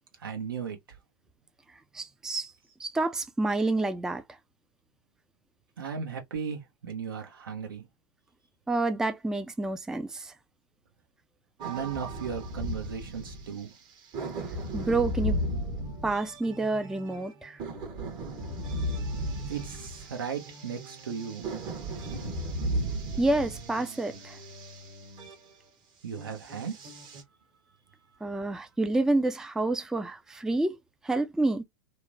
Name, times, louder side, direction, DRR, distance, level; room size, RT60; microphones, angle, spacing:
voice 1, 0.2-0.8 5.8-7.8 11.6-13.7 19.5-21.4 26.0-26.9, right 7 dB, 75° right, 1.0 m, -36 dB
voice 2, 1.9-2.5 2.8-4.4 8.7-10.3 14.7-15.4 16.0-17.6 23.2-24.4 28.2-30.8 31.0-31.6, right 2 dB, 5° right, 0.3 m, -28 dB
sound 1, 11.6-13.8 14.1-25.3 26.2-27.2, right 1 dB, 40° right, 1.0 m, -35 dB
2.9 x 2.1 x 2.4 m
hypercardioid pair, 95°, 12 cm